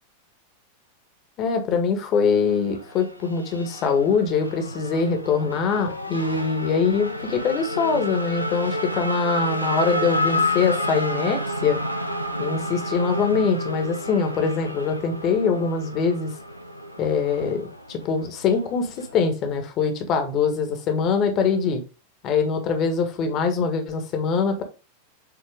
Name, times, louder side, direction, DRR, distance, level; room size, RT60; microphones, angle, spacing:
voice 1, 1.4-11.8 12.4-16.3 17.0-21.8 22.2-24.6, left 5 dB, 35° left, 1.6 m, -23 dB
Race car auto racing / Accelerating revving vroom, 2.3-19.3, equal, 90° right, 0.8 m, -30 dB
7.4 x 4.2 x 3.6 m
figure-of-eight pair, 90°, 0 cm